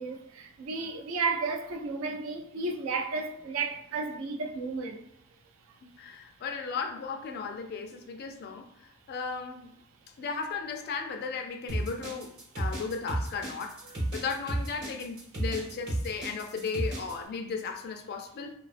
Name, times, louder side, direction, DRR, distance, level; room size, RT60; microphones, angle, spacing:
voice 1, 0.0-5.0, right 4 dB, 70° right, 0.4 m, -33 dB
voice 2, 6.0-9.7 10.2-13.8 14.1-18.5, left 5 dB, 50° left, 0.3 m, -36 dB
sound 1, 11.7-17.1, right 1 dB, 55° right, 0.9 m, -33 dB
2.4 x 2.3 x 2.4 m
head